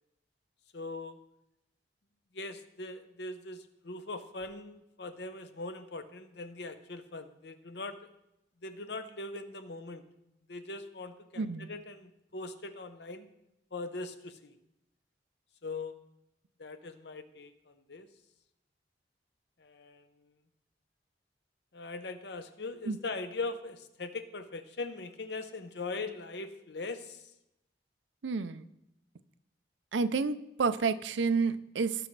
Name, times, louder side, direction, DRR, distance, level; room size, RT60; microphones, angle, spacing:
voice 1, 0.7-1.2 2.3-8.0 8.6-10.0 10.5-13.3 13.7-14.5 15.6-15.9 16.6-18.1 19.6-20.1 21.7-27.2, left 3 dB, 65° left, 10 dB, 0.8 m, -41 dB
voice 2, 11.4-11.7 22.9-23.0 28.2-28.6 29.9-32.1, right 4 dB, 90° right, 14 dB, 0.5 m, -30 dB
18.0 x 6.1 x 3.2 m, 0.87 s
head